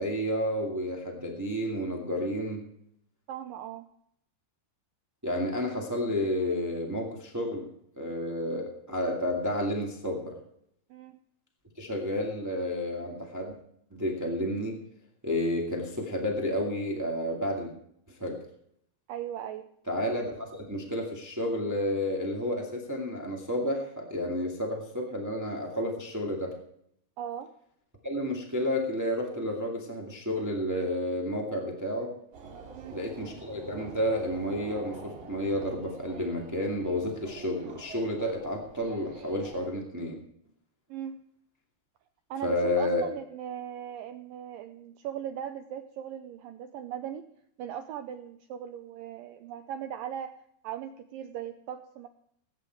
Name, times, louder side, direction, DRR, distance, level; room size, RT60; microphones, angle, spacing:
voice 1, 0.0-2.6 5.2-7.7 8.0-10.4 11.8-13.5 13.9-14.8 15.2-17.7 18.2-18.4 19.9-26.5 28.0-32.1 32.9-40.2 42.4-43.0, left 1 dB, 15° right, 0 dB, 0.5 m, -31 dB
voice 2, 3.3-3.9 10.9-11.2 19.1-19.7 27.2-27.5 32.7-33.0 40.9-41.2 42.3-47.3 47.6-50.3 50.6-52.1, right 9 dB, 85° right, 8 dB, 2.0 m, -38 dB
sound 1, 32.3-39.7, right 5 dB, 60° right, 3.9 m, -46 dB
19.0 x 9.3 x 4.6 m, 0.70 s
omnidirectional pair, 4.7 m